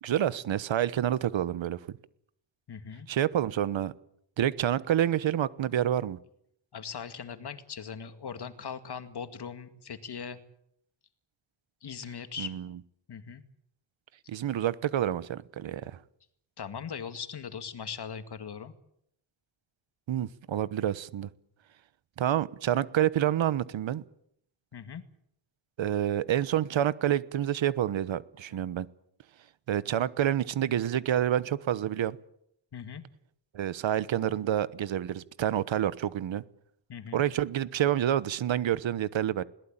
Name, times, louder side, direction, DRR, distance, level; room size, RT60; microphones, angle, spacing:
voice 1, 0.0-1.8 3.1-3.9 4.4-6.2 12.4-12.7 14.3-16.0 20.1-21.3 22.2-24.0 25.8-28.9 29.7-32.2 33.5-36.4 37.1-39.4, right 11 dB, 75° right, 1.2 m, -28 dB
voice 2, 2.7-3.1 6.7-10.4 11.8-12.5 13.1-13.4 16.6-18.7 24.7-25.0 32.7-33.0 36.9-37.2, left 7 dB, 55° left, 2.2 m, -40 dB
21.5 x 18.5 x 8.8 m
cardioid pair, 90°, 46 cm